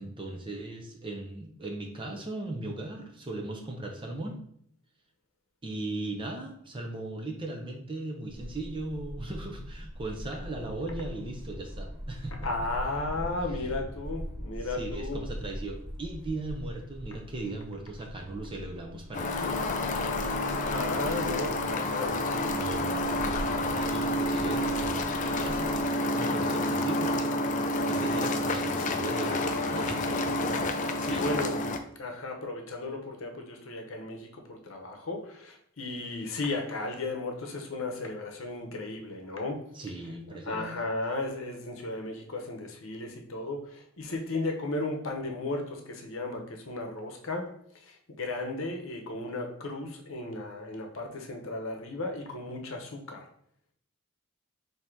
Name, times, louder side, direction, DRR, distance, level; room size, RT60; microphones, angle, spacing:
voice 1, 0.0-4.4 5.6-12.3 14.6-19.5 22.1-22.2 22.5-30.2 30.9-31.4 39.7-40.7, right 2 dB, 25° right, 1 dB, 0.6 m, -38 dB
sound 1, 8.2-25.8, equal, 45° right, 0.9 m, -42 dB
voice 2, 12.4-15.2 20.7-22.3 29.9-30.1 30.7-31.7 32.0-39.6 40.4-53.2, left 2 dB, 65° left, 3 dB, 0.8 m, -35 dB
sound 2, 19.1-31.8, left 1 dB, 35° left, 0.3 m, -29 dB
3.8 x 2.8 x 4.5 m, 0.67 s
head